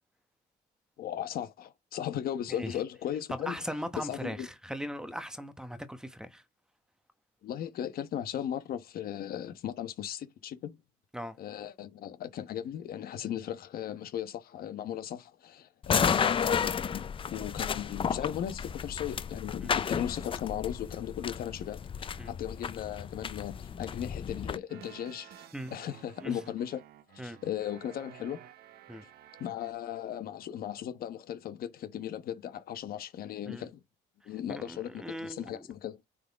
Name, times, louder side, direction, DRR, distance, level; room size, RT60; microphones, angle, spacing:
voice 1, 1.0-3.6 4.0-4.5 7.4-10.8 11.4-26.8 27.2-28.4 29.0-29.1 29.4-33.8 34.3-36.0, left 10 dB, 60° left, 1.1 m, -37 dB
voice 2, 3.3-6.4 11.1-11.4 19.6-19.7 22.2-22.3 25.5-25.7 26.2-26.4 27.2-27.4 28.9-29.0 33.5-33.7 34.5-35.7, equal, 5° right, 1.0 m, -39 dB
sound 1, 15.8-24.6, left 7 dB, 30° left, 0.6 m, -32 dB
sound 2, 24.7-29.7, right 11 dB, 65° right, 0.8 m, -53 dB
9.4 x 4.0 x 3.5 m
cardioid pair, 110°, 17 cm